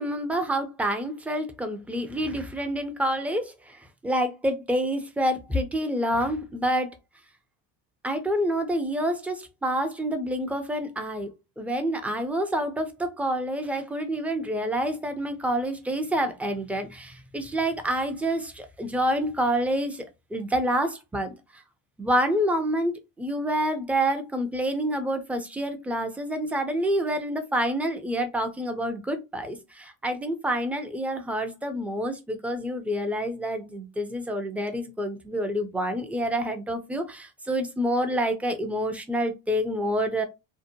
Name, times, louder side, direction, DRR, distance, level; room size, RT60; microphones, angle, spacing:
voice 1, 0.0-7.0 8.0-11.3 11.6-21.6 22.0-40.2, equal, 5° right, 0.4 m, -28 dB
2.8 x 2.1 x 2.5 m
supercardioid pair, 90°, 45 cm